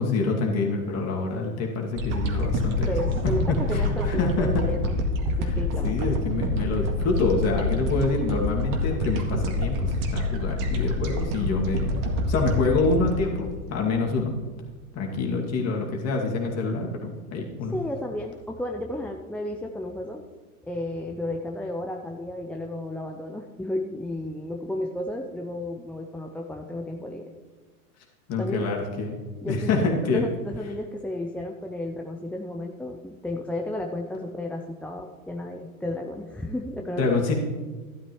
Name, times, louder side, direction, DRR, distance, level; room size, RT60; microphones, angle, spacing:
voice 1, 0.0-2.9 3.4-4.6 5.4-5.5 5.8-11.9 12.3-14.3 14.9-17.8 28.3-29.2 29.5-30.2 37.0-37.3, left 3 dB, 35° left, 0 dB, 2.4 m, -26 dB
sound 1, 2.0-14.3 14.8-14.9, left 1 dB, 45° right, 1.9 m, -27 dB
voice 2, 2.9-6.0 10.8-11.0 17.7-20.2 20.6-27.3 28.4-28.7 29.4-37.1, left 1 dB, 5° left, 2 dB, 0.5 m, -33 dB
13.0 x 12.0 x 3.1 m, 1.3 s
hypercardioid pair, 100°, 44 cm